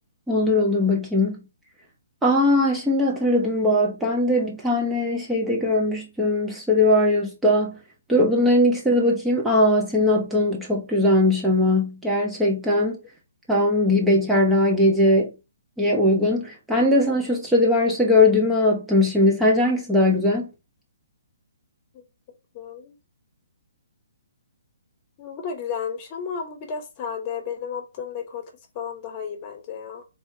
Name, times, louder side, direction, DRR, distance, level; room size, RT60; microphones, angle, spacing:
voice 1, 0.3-1.4 2.2-7.8 8.1-13.0 13.5-15.3 15.8-20.5, left 1 dB, 5° right, 1.0 m, -20 dB
voice 2, 22.5-22.9 25.2-28.4 28.7-30.0, left 7 dB, 30° left, 1.1 m, -33 dB
3.9 x 3.5 x 2.9 m
figure-of-eight pair, 135°, 0 cm